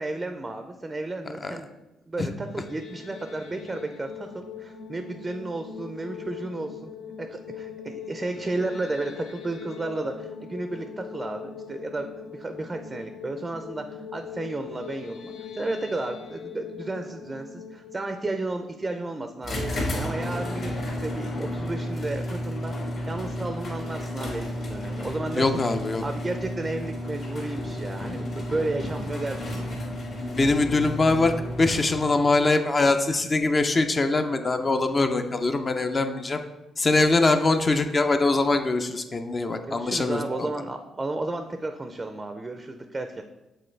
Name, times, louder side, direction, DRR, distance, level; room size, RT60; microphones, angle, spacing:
voice 1, 0.0-1.7 2.1-6.9 7.2-25.7 26.0-29.8 39.5-43.2, right 2 dB, 20° right, 7 dB, 0.4 m, -33 dB
sound 1, 2.4-19.5, left 6 dB, 90° left, 0.6 m, -41 dB
sound 2, 19.4-32.2, left 1 dB, 60° left, 2.0 m, -32 dB
voice 2, 25.3-26.0 30.2-31.3 31.6-36.4 36.8-40.5, left 3 dB, 30° left, 7 dB, 0.5 m, -23 dB
7.7 x 3.8 x 3.3 m, 1.0 s
cardioid pair, 90°, 0 cm